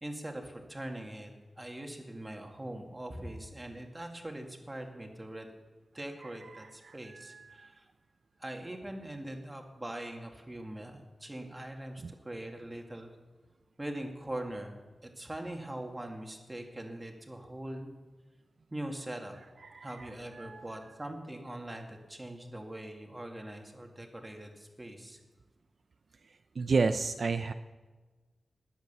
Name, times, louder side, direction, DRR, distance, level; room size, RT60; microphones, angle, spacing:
voice 1, 0.0-1.3 1.6-5.5 5.9-7.7 8.4-13.1 13.8-17.9 18.7-19.4 19.8-25.2, right 1 dB, 15° right, 3 dB, 2.1 m, -42 dB
voice 2, 6.2-7.7 12.0-12.1 19.6-20.8 26.6-27.5, right 4 dB, 60° right, 8 dB, 0.5 m, -33 dB
20.0 x 8.3 x 6.9 m, 1.3 s
wide cardioid pair, 110°, 0 cm